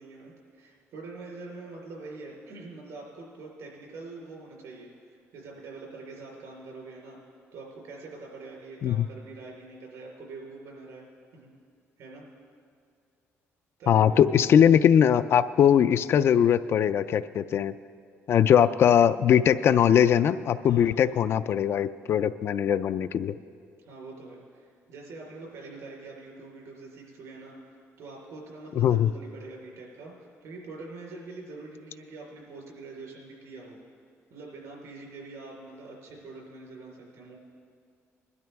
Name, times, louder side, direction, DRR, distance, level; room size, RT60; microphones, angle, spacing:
voice 1, 0.0-7.2 7.5-11.1 11.3-11.5 12.0-12.3 13.8-14.2 20.7-20.8 23.8-27.6 28.0-33.8 34.3-37.4, right 3 dB, 80° right, -2 dB, 4.2 m, -44 dB
voice 2, 13.9-17.7 18.3-23.3 28.8-29.1, left 9 dB, 55° left, 13 dB, 0.4 m, -21 dB
20.0 x 12.5 x 3.5 m, 2.2 s
cardioid pair, 125°, 5 cm